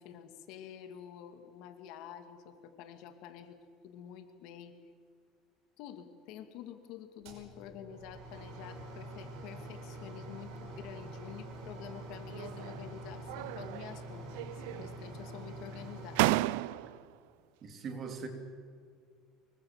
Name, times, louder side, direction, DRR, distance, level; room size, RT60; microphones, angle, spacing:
voice 1, 0.0-3.6 3.8-4.7 5.8-16.3 16.7-16.8, left 10 dB, 60° left, 8 dB, 2.2 m, -48 dB
sound 1, 7.2-16.4, right 1 dB, 70° right, 6.0 m, -46 dB
sound 2, 12.3-12.9 13.3-14.0 14.3-15.1 15.7-15.8 16.1-17.1, right 18 dB, 90° right, 0.5 m, -33 dB
voice 2, 17.6-18.3, right 5 dB, 30° right, 6 dB, 2.8 m, -40 dB
25.0 x 23.0 x 7.4 m, 2.1 s
cardioid pair, 160°, 0 cm